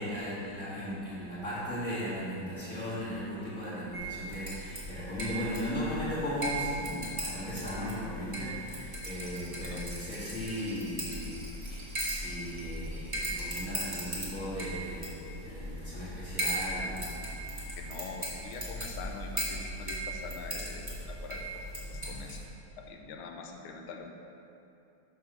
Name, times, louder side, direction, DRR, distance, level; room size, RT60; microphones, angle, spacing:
voice 1, 0.0-17.6, equal, 45° left, -12 dB, 2.1 m, -37 dB
sound 1, 3.9-22.5, right 1 dB, 20° right, 1.3 m, -38 dB
Rattle, 8.9-14.6 14.9-15.0 15.2-15.3, right 2 dB, 45° right, 1.1 m, -52 dB
voice 2, 17.8-22.4 22.8-24.1, left 4 dB, 90° left, 2 dB, 1.5 m, -44 dB
6.4 x 5.7 x 6.0 m, 2.8 s
omnidirectional pair, 2.3 m